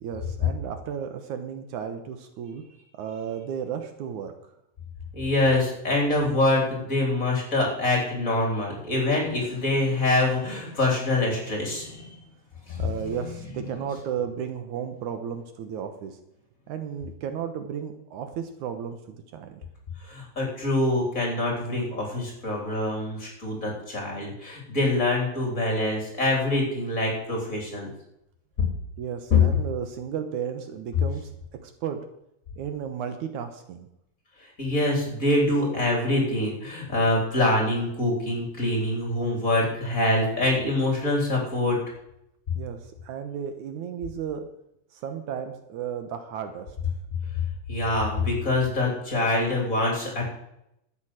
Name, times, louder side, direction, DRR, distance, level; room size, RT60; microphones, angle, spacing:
voice 1, 0.0-2.6 3.0-4.3 12.8-16.2 16.7-19.6 29.0-31.3 31.6-32.0 32.6-33.9 42.6-44.5 44.9-46.8, right 8 dB, 75° right, 7 dB, 2.4 m, -34 dB
voice 2, 5.1-12.2 12.7-13.6 20.0-27.9 29.3-29.4 34.6-41.8 47.7-50.3, left 2 dB, 25° left, -1 dB, 4.1 m, -25 dB
12.5 x 9.0 x 6.4 m, 0.80 s
omnidirectional pair, 3.6 m